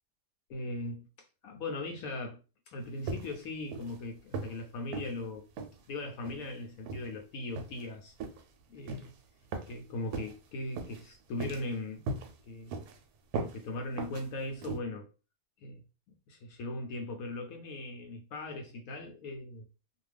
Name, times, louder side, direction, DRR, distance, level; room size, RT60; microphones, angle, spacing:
voice 1, 0.5-1.1 1.4-2.4 2.7-5.5 5.9-8.1 8.7-9.2 9.7-12.0 12.5-12.8 13.5-15.1 15.6-15.8 16.3-19.7, left 2 dB, 70° left, 0.9 m, -39 dB
sound 1, 3.1-3.4 3.7-4.0 4.3-4.6 4.9-5.1 5.6-5.8 6.2-6.5 6.9-7.1 7.6-7.9 8.2-8.4 8.9-9.1 9.5-9.8 10.1-10.4 10.8-11.0 11.4-11.7 12.1-12.3 12.7-13.0 13.3-13.6 14.0-14.2 14.6-14.8, right 3 dB, 75° right, 1.0 m, -38 dB
2.5 x 2.3 x 3.2 m
omnidirectional pair, 1.6 m